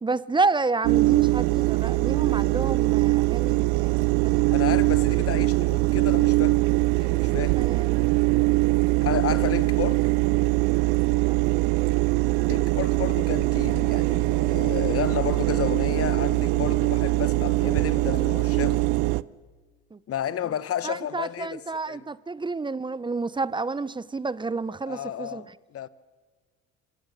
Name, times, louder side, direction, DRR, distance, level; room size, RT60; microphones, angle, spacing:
voice 1, 0.0-4.4 7.6-8.1 8.7-8.8 11.2-11.4 19.9-20.0 20.8-25.4, right 3 dB, 15° right, 0.6 m, -30 dB
sound 1, 0.8-19.2, right 22 dB, 65° right, 0.6 m, -22 dB
voice 2, 4.5-6.7 7.0-7.6 9.0-10.1 12.5-18.9 20.1-22.1 24.9-25.9, left 10 dB, 40° left, 1.1 m, -32 dB
25.0 x 17.0 x 6.6 m
hypercardioid pair, 65°, 35 cm